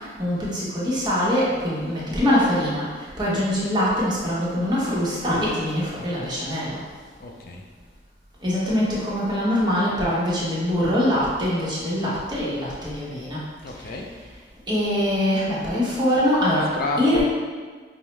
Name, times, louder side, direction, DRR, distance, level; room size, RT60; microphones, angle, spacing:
voice 1, 0.2-2.8 3.2-6.8 8.4-13.4 14.7-16.7 17.0-17.2, equal, 25° right, -7 dB, 1.0 m, -23 dB
voice 2, 7.2-7.6 13.6-14.1 16.7-17.2, left 2 dB, 55° left, 2 dB, 0.5 m, -30 dB
5.4 x 2.0 x 3.1 m, 1.5 s
head